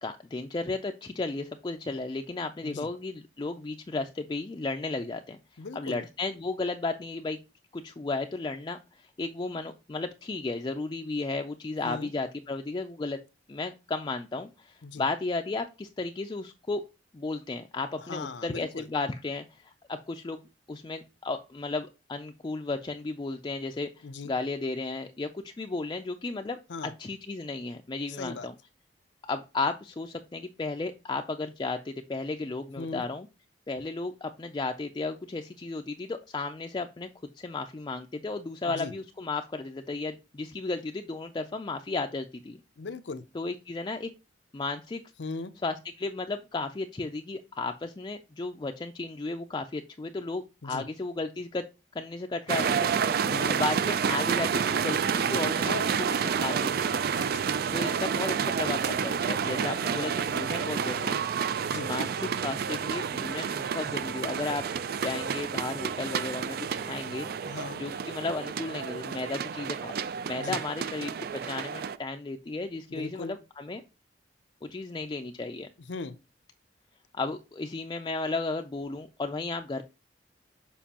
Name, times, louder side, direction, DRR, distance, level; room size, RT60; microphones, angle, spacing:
voice 1, 0.0-5.4 5.7-7.4 7.7-13.2 13.5-16.8 17.1-20.4 20.7-26.6 27.0-28.5 29.2-33.3 33.7-37.1 37.4-42.6 43.3-44.1 44.5-45.0 45.6-51.6 51.9-52.9 53.5-56.9 57.7-61.3 61.9-62.1 62.4-64.7 65.0-67.3 67.8-71.1 71.4-73.8 74.6-75.7 77.1-79.8, left 3 dB, 25° left, 0.4 m, -34 dB
voice 2, 5.6-6.0 11.8-12.1 14.8-15.0 18.0-18.9 24.0-24.3 26.7-26.9 28.1-28.5 32.8-33.1 38.7-38.9 42.8-43.2 45.2-45.5 50.6-50.8 53.2-53.6 57.1-57.6 60.0-60.1 61.7-61.9 67.4-67.8 70.4-70.6 72.9-73.4 75.8-76.2, left 4 dB, 80° left, 0.6 m, -39 dB
sound 1, 52.5-72.0, right 7 dB, 55° right, 0.4 m, -29 dB
7.2 x 4.5 x 2.9 m
head